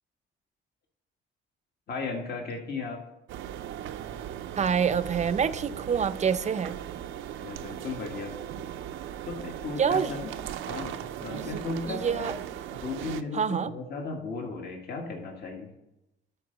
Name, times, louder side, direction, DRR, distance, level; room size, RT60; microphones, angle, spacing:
voice 1, 1.9-3.0 7.4-8.3 9.3-10.3 10.7-12.3 12.7-15.7, left 4 dB, 55° left, 1.7 m, -35 dB
sound 1, 3.3-13.2, right 10 dB, 90° right, 0.6 m, -38 dB
voice 2, 4.6-6.8 9.8-10.1 11.4-11.6 11.9-12.3 13.3-13.7, right 7 dB, 35° right, 0.5 m, -26 dB
11.0 x 4.5 x 5.2 m
cardioid pair, 90°, 20 cm